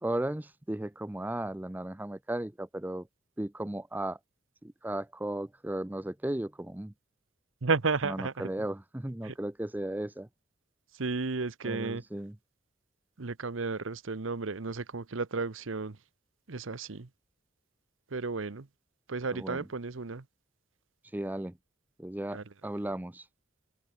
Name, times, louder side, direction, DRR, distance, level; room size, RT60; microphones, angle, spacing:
voice 1, 0.0-3.0 3.4-4.2 4.6-6.9 8.4-10.3 11.6-12.3 19.4-19.6 21.1-21.5 22.0-23.2, right 1 dB, 10° right, 0.5 m, -35 dB
voice 2, 7.6-8.7 9.2-9.4 10.9-12.0 13.2-16.0 16.5-17.1 18.1-18.7 19.1-20.3 22.3-22.7, right 4 dB, 70° right, 0.9 m, -33 dB
head